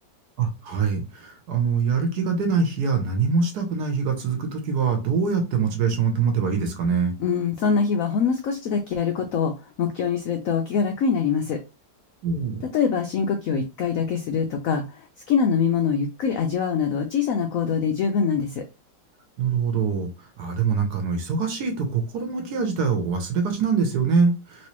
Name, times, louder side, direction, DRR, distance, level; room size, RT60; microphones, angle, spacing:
voice 1, 0.4-7.1 12.2-12.6 19.4-20.1 20.4-24.7, right 5 dB, 65° right, 1.2 m, -24 dB
voice 2, 7.2-9.5 9.8-11.6 12.7-18.6, left 6 dB, 85° left, 0.7 m, -24 dB
3.1 x 3.0 x 3.0 m
omnidirectional pair, 2.0 m